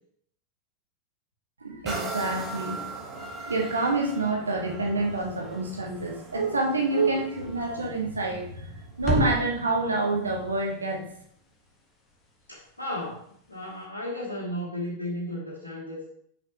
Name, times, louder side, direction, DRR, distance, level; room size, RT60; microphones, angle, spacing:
voice 1, 1.6-2.8 3.5-8.7 9.0-11.0, right 3 dB, 75° right, 0 dB, 1.2 m, -27 dB
sound 1, 1.8-9.5 10.0-10.1, right 3 dB, 20° right, 1.2 m, -40 dB
sound 2, 5.0-13.9, left 1 dB, 15° left, 1.6 m, -37 dB
voice 2, 12.5-13.2 13.5-16.0, left 1 dB, 85° left, -3 dB, 1.0 m, -34 dB
6.2 x 5.9 x 2.9 m, 0.67 s
figure-of-eight pair, 90°, 0 cm